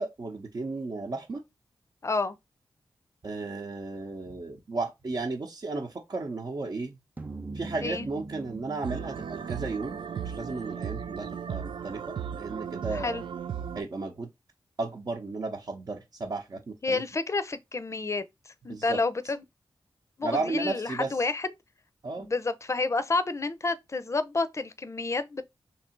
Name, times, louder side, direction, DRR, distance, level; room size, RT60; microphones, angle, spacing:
voice 1, 0.0-1.4 3.2-7.0 7.5-12.0 12.3-13.2 13.7-14.3 14.8-17.0 18.7-19.0 20.2-21.1 22.0-22.3, right 3 dB, 55° right, 0.8 m, -34 dB
voice 2, 2.0-2.4 7.8-8.1 12.9-13.2 16.8-18.2 18.6-19.4 20.2-21.5 22.2-25.4, left 3 dB, 35° left, 0.5 m, -29 dB
sound 1, 7.2-11.5, right 3 dB, 20° right, 0.7 m, -43 dB
sound 2, 8.8-13.8, right 8 dB, 85° right, 0.4 m, -36 dB
3.2 x 2.8 x 4.3 m
cardioid pair, 60°, 8 cm